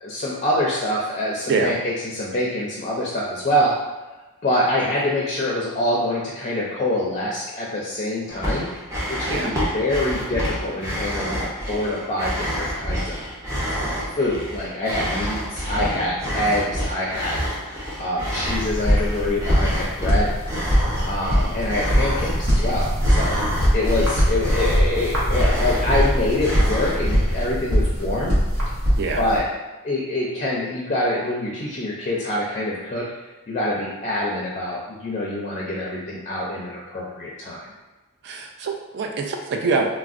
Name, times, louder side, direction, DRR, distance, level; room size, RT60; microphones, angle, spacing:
voice 1, 0.0-3.7 4.4-8.7 9.1-13.2 14.1-17.4 18.0-20.3 21.1-23.4 23.7-28.4 29.2-29.4 29.8-33.1 33.5-37.6, left 1 dB, 30° left, -3 dB, 0.4 m, -25 dB
sound 1, 8.3-27.5, equal, 15° right, 0.6 m, -28 dB
sound 2, 18.5-29.4, equal, 70° right, 0.8 m, -22 dB
voice 2, 38.2-39.9, right 4 dB, 50° right, 2 dB, 0.4 m, -24 dB
3.5 x 2.0 x 2.4 m, 1.2 s
head